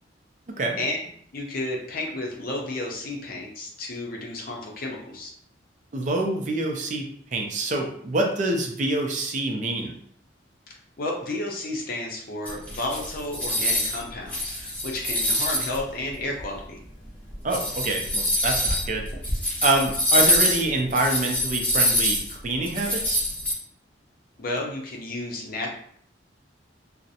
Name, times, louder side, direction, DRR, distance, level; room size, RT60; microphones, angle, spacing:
voice 1, 0.5-0.8 5.9-7.1 7.3-9.9 17.4-19.1 19.6-23.3, right 2 dB, 40° right, 2 dB, 0.4 m, -26 dB
voice 2, 1.3-5.3 10.7-16.8 24.4-25.7, left 2 dB, 50° left, 0 dB, 0.5 m, -32 dB
sound 1, 12.5-14.0 14.3-15.8 16.4-16.5 17.3-23.5, left 1 dB, 10° left, 0.6 m, -24 dB
2.4 x 2.0 x 2.7 m, 0.64 s
head